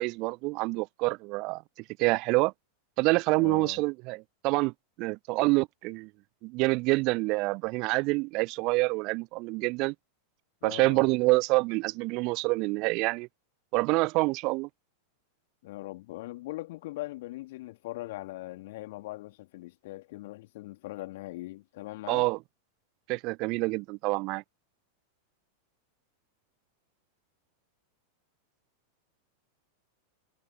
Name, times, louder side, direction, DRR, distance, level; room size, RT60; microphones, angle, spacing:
voice 1, 0.0-1.6 2.0-2.5 3.0-4.7 5.0-6.1 6.4-9.9 10.6-13.3 13.7-14.7 22.1-22.4 23.1-24.4, right 25 dB, 40° right, 0.5 m, -27 dB
voice 2, 3.4-3.8 10.6-11.1 15.6-22.2, left 18 dB, 50° left, 3.0 m, -40 dB
figure-of-eight pair, 90°, 0 cm